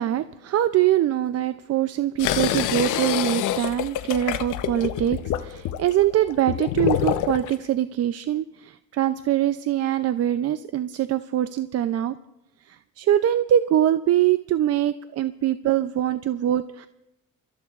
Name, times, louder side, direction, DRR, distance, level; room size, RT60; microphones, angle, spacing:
voice 1, 0.0-12.2 12.7-16.9, right 11 dB, 55° right, 12 dB, 0.5 m, -23 dB
sound 1, 2.2-7.6, left 11 dB, 85° left, 0.7 m, -27 dB
28.5 x 13.5 x 2.4 m, 0.95 s
cardioid pair, 90°, 30 cm